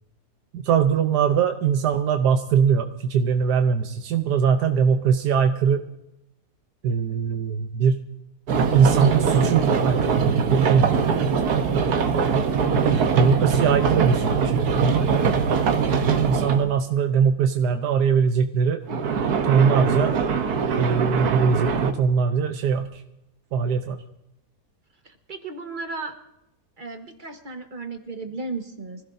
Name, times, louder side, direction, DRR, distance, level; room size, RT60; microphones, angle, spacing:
voice 1, 0.5-5.8 6.8-8.0 8.7-11.5 12.9-14.9 16.2-18.8 19.4-20.2 20.8-23.0 23.5-24.0, right 6 dB, 90° right, 6 dB, 1.4 m, -21 dB
sound 1, 8.5-16.7 18.9-21.9, right 6 dB, 75° right, 1.6 m, -22 dB
voice 2, 16.3-16.8 25.0-26.1 26.8-29.0, right 3 dB, 30° right, 5 dB, 1.5 m, -35 dB
25.0 x 16.0 x 2.7 m, 0.88 s
omnidirectional pair, 1.7 m